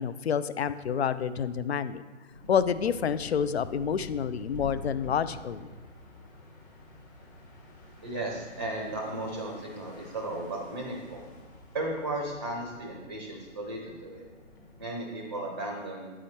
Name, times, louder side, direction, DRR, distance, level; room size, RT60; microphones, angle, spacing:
voice 1, 0.0-2.0 2.5-5.7, left 7 dB, 55° left, 14 dB, 0.5 m, -28 dB
sound 1, 2.3-14.8, left 1 dB, 15° left, 0.9 m, -48 dB
voice 2, 8.0-11.2 11.7-14.2 14.8-16.1, right 2 dB, 20° right, 0 dB, 0.6 m, -35 dB
9.1 x 4.9 x 4.2 m, 1.4 s
hypercardioid pair, 165°, 37 cm